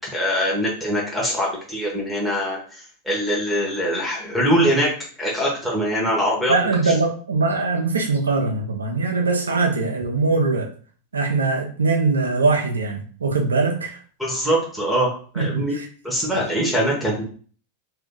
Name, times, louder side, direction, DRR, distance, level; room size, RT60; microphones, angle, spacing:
voice 1, 0.0-4.9 5.2-6.5 6.8-6.9 14.2-15.8 16.0-17.2, equal, ahead, -3 dB, 1.3 m, -23 dB
voice 2, 6.5-10.7 11.1-14.0 15.4-15.9, right 3 dB, 75° right, 3 dB, 0.8 m, -21 dB
3.5 x 2.8 x 3.6 m, 0.42 s
figure-of-eight pair, 90°, 0 cm